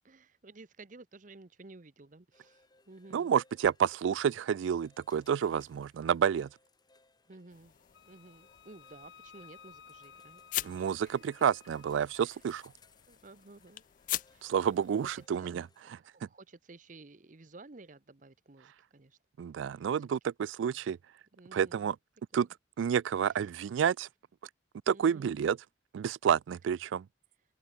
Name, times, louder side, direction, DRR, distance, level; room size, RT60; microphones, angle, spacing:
voice 1, 0.0-3.3 7.3-7.7 8.0-11.5 12.2-12.4 13.1-13.8 14.3-14.7 15.1-15.5 15.8-19.2 19.7-19.9 20.6-20.8 21.3-21.8 22.3-22.5 23.3-23.4 24.9-25.4, right 3 dB, 45° right, 0.9 m, -54 dB
sound 1, 2.3-15.8, left 4 dB, 20° left, 4.4 m, -66 dB
voice 2, 3.1-6.5 10.6-12.7 14.4-15.6 19.4-21.0 21.5-22.0 22.3-22.5 22.8-24.1 24.9-25.6 25.9-27.1, right 8 dB, 90° right, 0.3 m, -29 dB
sound 2, 7.5-15.3, left 15 dB, 45° left, 0.3 m, -43 dB
Wind instrument woodwind instrument, 7.9-12.0, left 6 dB, 70° left, 1.2 m, -56 dB
open air
head